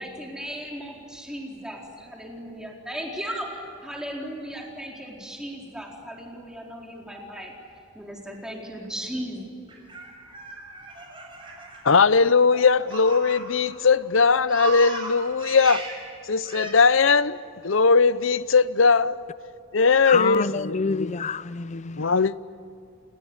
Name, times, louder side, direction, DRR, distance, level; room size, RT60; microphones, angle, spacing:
voice 1, 0.0-7.5 7.9-9.5, equal, 5° right, 4.3 m, -36 dB
Laughter, 9.7-13.8 14.1-16.0 16.4-16.7, right 3 dB, 25° right, 6.3 m, -37 dB
voice 2, 11.8-15.9 16.3-17.4 17.6-19.2 19.7-20.8 22.0-22.3, left 4 dB, 70° left, 0.8 m, -19 dB
voice 3, 20.1-22.2, left 5 dB, 35° left, 0.6 m, -27 dB
29.5 x 19.5 x 9.8 m
head